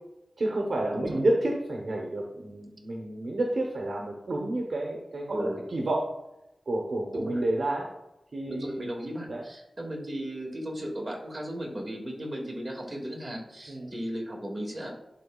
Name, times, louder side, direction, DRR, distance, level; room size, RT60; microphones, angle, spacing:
voice 1, 0.4-6.1 6.7-7.9 8.3-8.9 9.3-9.4 13.7-13.9, right 1 dB, 70° right, 0 dB, 0.9 m, -30 dB
voice 2, 7.1-7.4 8.5-14.9, equal, 35° right, -2 dB, 2.1 m, -36 dB
11.0 x 3.8 x 2.4 m, 0.91 s
wide cardioid pair, 60°, 0 cm